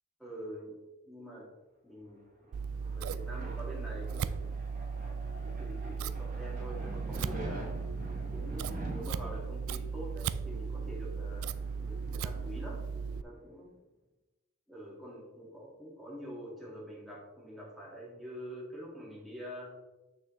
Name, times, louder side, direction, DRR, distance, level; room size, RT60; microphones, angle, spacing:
voice 1, 0.2-0.8 1.0-1.5 1.8-2.2 2.8-4.4 5.4-7.7 8.3-11.5 11.8-13.7 14.7-19.8, equal, ahead, -4 dB, 1.8 m, -45 dB
sound 1, 2.2-13.5, right 1 dB, 40° right, 1.6 m, -47 dB
Scissors, 2.5-13.2, right 5 dB, 75° right, 0.3 m, -37 dB
6.9 x 6.3 x 3.1 m, 1.1 s
head